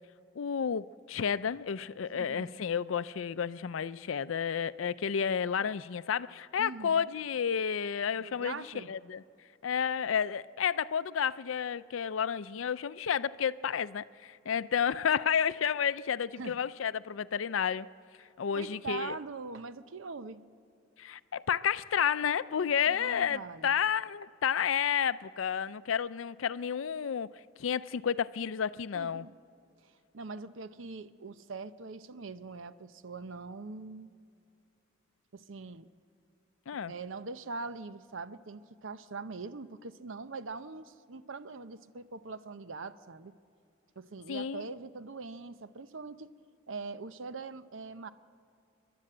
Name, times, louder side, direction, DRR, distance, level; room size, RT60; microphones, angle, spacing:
voice 1, 0.4-9.2 9.6-17.9 18.4-19.1 21.0-27.3 27.6-29.3 36.7-36.9 44.3-44.7, left 7 dB, 75° left, 0.5 m, -31 dB
voice 2, 2.1-2.5 6.6-7.0 8.2-8.9 16.4-16.6 18.5-20.4 22.8-23.9 28.9-29.4 29.8-34.1 35.3-35.9 36.9-43.3 44.0-46.3 46.7-48.1, right 4 dB, 75° right, 0.7 m, -42 dB
29.5 x 11.5 x 7.8 m
head